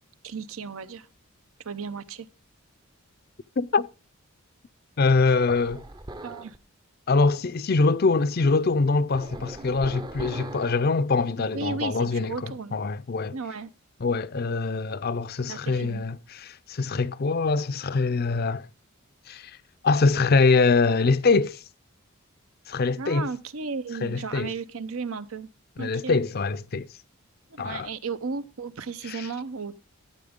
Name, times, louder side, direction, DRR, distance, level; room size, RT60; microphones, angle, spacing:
voice 1, 0.2-1.1 1.6-2.3 6.2-6.6 11.4-12.8 13.3-13.7 15.5-16.0 23.0-25.5 25.8-26.2 27.5-29.7, right 4 dB, 80° right, 0.8 m, -34 dB
voice 2, 3.6-3.9 5.0-5.8 7.1-13.4 14.0-18.6 19.3-19.5 19.8-21.6 22.7-23.3 24.0-24.5 25.8-26.9 27.6-27.9 29.1-29.2, left 4 dB, 45° left, 0.5 m, -24 dB
sound 1, 5.5-6.6 9.1-10.9, right 2 dB, 20° right, 0.6 m, -39 dB
13.0 x 7.9 x 3.6 m
head